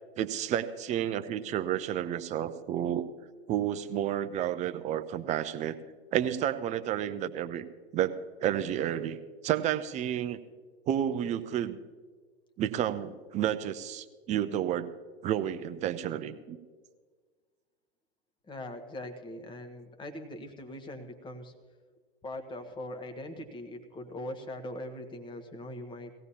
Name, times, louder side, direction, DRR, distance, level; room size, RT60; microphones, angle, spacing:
voice 1, 0.2-3.1 3.5-5.8 6.1-7.7 7.9-8.1 8.4-9.2 9.4-10.4 10.9-11.8 12.6-14.9 15.2-16.6, right 10 dB, 20° right, 11 dB, 0.6 m, -30 dB
voice 2, 18.5-21.5 22.2-26.1, left 1 dB, 15° left, 6 dB, 1.3 m, -41 dB
18.5 x 16.5 x 2.8 m, 1.5 s
hypercardioid pair, 110°, 32 cm